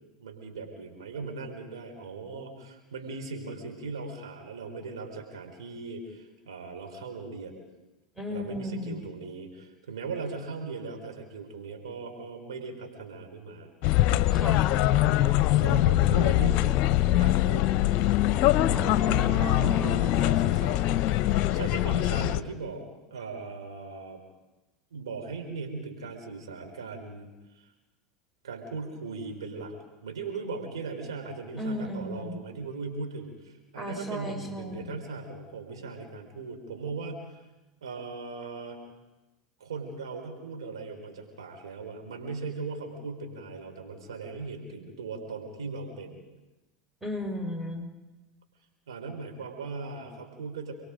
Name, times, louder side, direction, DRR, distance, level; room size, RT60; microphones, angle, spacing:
voice 1, 0.2-7.7 8.3-13.7 15.1-17.7 19.4-22.8 23.1-24.2 24.9-27.7 28.4-29.7 30.0-37.4 37.8-38.8 39.6-46.2 48.9-50.7, right 4 dB, 80° right, 3 dB, 4.5 m, -39 dB
voice 2, 8.2-9.1 14.3-14.7 18.7-20.0 31.6-32.4 33.7-35.0 47.0-47.9, equal, 5° right, 4 dB, 4.8 m, -35 dB
sound 1, 13.8-22.4, left 14 dB, 50° left, 0.8 m, -23 dB
29.0 x 22.5 x 5.2 m, 1.1 s
hypercardioid pair, 80°, 3 cm